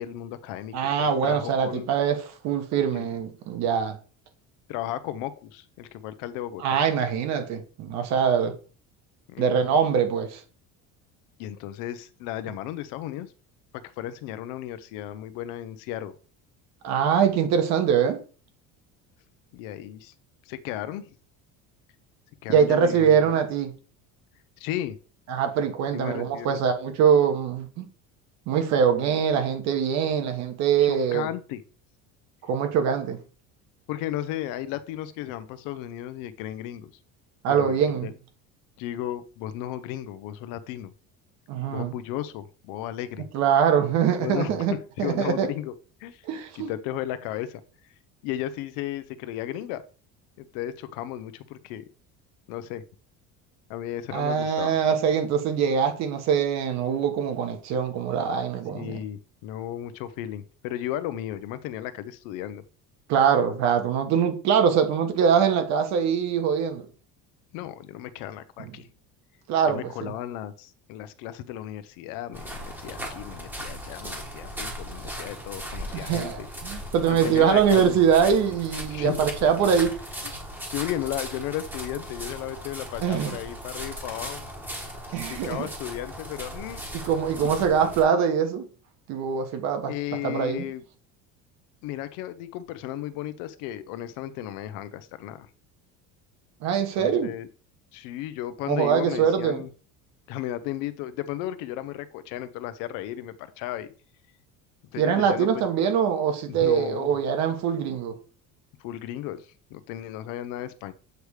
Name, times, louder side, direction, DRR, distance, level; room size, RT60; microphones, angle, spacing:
voice 1, 0.0-1.9 2.9-3.1 4.7-6.8 9.3-9.6 11.4-13.3 14.0-16.1 19.5-20.1 20.5-21.1 22.4-23.3 24.6-25.0 25.9-26.6 30.8-31.6 33.9-36.9 37.5-38.1 38.8-40.9 41.7-43.3 44.2-44.5 45.0-45.7 46.0-46.2 46.5-47.6 48.2-49.8 50.4-51.8 52.5-52.8 53.7-54.8 58.7-62.6 67.5-68.9 69.7-76.5 77.1-78.0 78.9-79.2 80.2-80.3 80.7-84.4 85.3-86.8 89.9-90.8 91.8-95.5 97.0-97.5 97.9-99.7 100.3-103.9 104.9-105.6 106.5-107.2 108.8-110.9, left 12 dB, 75° left, 0.7 m, -34 dB
voice 2, 0.7-2.2 2.4-4.0 6.6-8.5 9.4-10.4 16.8-18.2 22.5-23.7 25.3-27.9 28.5-31.3 32.5-33.2 37.4-38.1 41.5-41.9 43.3-45.5 46.3-46.7 54.1-59.0 63.1-66.9 69.5-70.1 75.9-80.0 83.0-83.4 85.1-85.7 87.0-88.7 89.1-89.9 90.2-90.7 96.6-97.3 98.7-99.6 105.0-108.2, right 7 dB, 55° right, 1.3 m, -23 dB
sound 1, 72.3-88.0, equal, 5° right, 1.2 m, -38 dB
8.0 x 3.3 x 4.8 m
cardioid pair, 170°, 33 cm